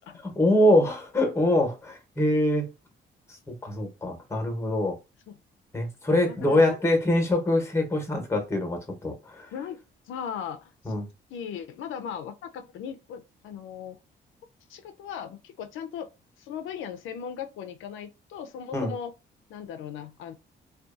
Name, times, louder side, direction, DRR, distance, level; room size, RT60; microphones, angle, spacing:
voice 1, 0.2-2.7 3.6-4.9 5.7-9.5 10.8-11.1 18.7-18.9, left 1 dB, 15° left, 0.9 m, -24 dB
voice 2, 6.3-6.8 9.5-9.8 10.1-10.9 11.3-14.0 14.7-16.1 16.4-19.1 19.5-20.3, left 8 dB, 80° left, 0.4 m, -38 dB
2.6 x 2.2 x 2.4 m
cardioid pair, 90°, 20 cm